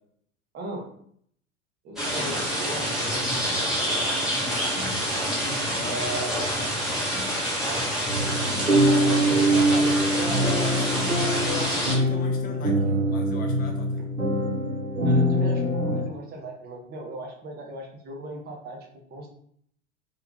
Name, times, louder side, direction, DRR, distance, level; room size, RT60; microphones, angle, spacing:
voice 1, 0.5-0.9 1.8-3.3 9.0-10.1 14.2-14.3 15.0-19.3, right 1 dB, 25° right, 0 dB, 0.9 m, -38 dB
sound 1, 2.0-12.0, equal, ahead, 1.1 m, -27 dB
voice 2, 5.6-6.5 9.2-14.0, left 2 dB, 20° left, 3 dB, 0.6 m, -36 dB
sound 2, 8.1-16.0, right 1 dB, 90° right, 1.2 m, -23 dB
3.3 x 2.8 x 3.7 m, 0.64 s
figure-of-eight pair, 85°, 41 cm